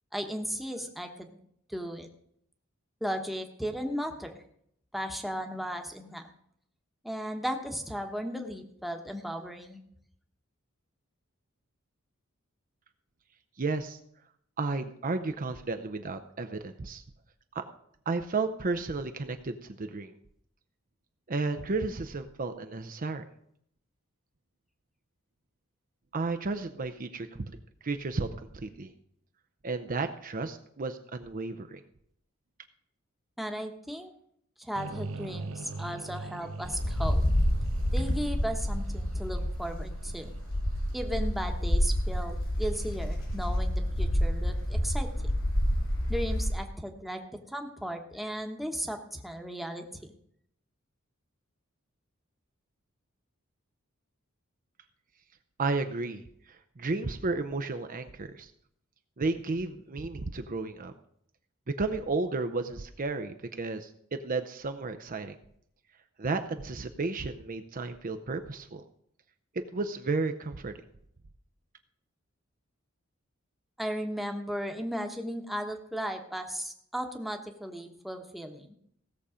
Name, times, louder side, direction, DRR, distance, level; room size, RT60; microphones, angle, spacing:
voice 1, 0.1-1.4 1.7-2.1 3.0-4.3 4.9-6.3 7.0-9.8 33.4-34.1 34.6-37.2 37.9-40.3 40.9-45.3 46.1-47.2 47.5-49.8 73.8-78.8, equal, ahead, 4 dB, 1.1 m, -36 dB
voice 2, 13.6-14.0 14.6-17.0 17.5-17.6 18.1-20.1 21.3-23.2 26.1-27.5 27.8-28.3 28.6-28.9 29.6-31.8 55.6-58.5 59.2-60.9 61.8-65.4 66.2-68.8 69.5-70.7, right 3 dB, 40° right, 8 dB, 0.6 m, -33 dB
sound 1, 34.8-41.9, right 3 dB, 90° right, 0.7 m, -43 dB
Wind, 36.6-46.7, equal, 65° left, 3.6 m, -28 dB
16.5 x 6.9 x 5.0 m, 0.69 s
head